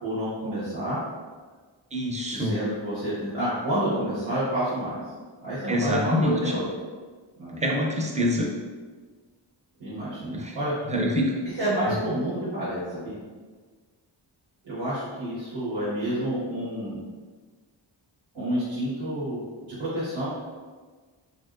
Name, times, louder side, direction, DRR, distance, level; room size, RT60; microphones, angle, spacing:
voice 1, 0.0-1.0 2.3-5.0 5.4-6.6 7.4-7.6 9.8-10.7 11.6-13.2 14.6-17.0 18.3-19.4 19.7-20.4, right 1 dB, 80° right, -12 dB, 1.1 m, -29 dB
voice 2, 1.9-2.5 5.7-6.3 7.6-8.5 10.3-10.6 10.9-11.3, equal, 15° right, -1 dB, 0.5 m, -25 dB
2.9 x 2.7 x 2.4 m, 1.4 s
wide cardioid pair, 50°, 48 cm